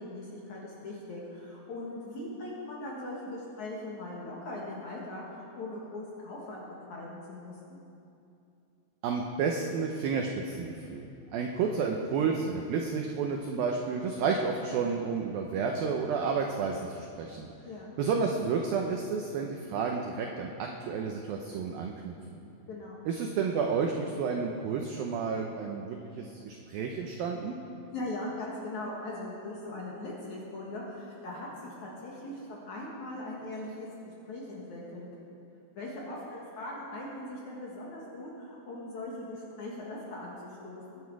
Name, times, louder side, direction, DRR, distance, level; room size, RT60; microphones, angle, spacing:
voice 1, 0.0-6.6 6.9-7.8 17.6-18.0 22.7-23.0 27.9-35.1 35.8-41.0, left 2 dB, 55° left, -4 dB, 2.3 m, -40 dB
voice 2, 9.0-17.5 18.0-22.1 23.1-27.6, right 5 dB, 85° right, 2 dB, 2.0 m, -31 dB
22.0 x 10.0 x 4.7 m, 2.7 s
omnidirectional pair, 5.3 m